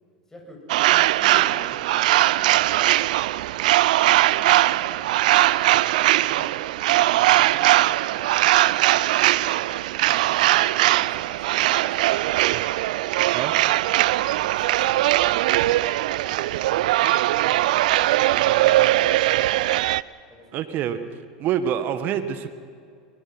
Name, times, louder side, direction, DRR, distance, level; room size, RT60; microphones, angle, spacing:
voice 1, 0.3-3.6 4.3-6.5 6.8-9.8 10.1-12.8 13.5-15.8 16.1-18.4 18.7-19.6 20.3-20.6, left 1 dB, 10° left, 0 dB, 7.2 m, -47 dB
sound 1, 0.7-20.0, right 16 dB, 70° right, 0.5 m, -20 dB
voice 2, 20.5-21.0 21.4-22.5, right 9 dB, 45° right, 11 dB, 1.6 m, -26 dB
21.5 x 21.5 x 6.1 m, 2.2 s
hypercardioid pair, 95°, 4 cm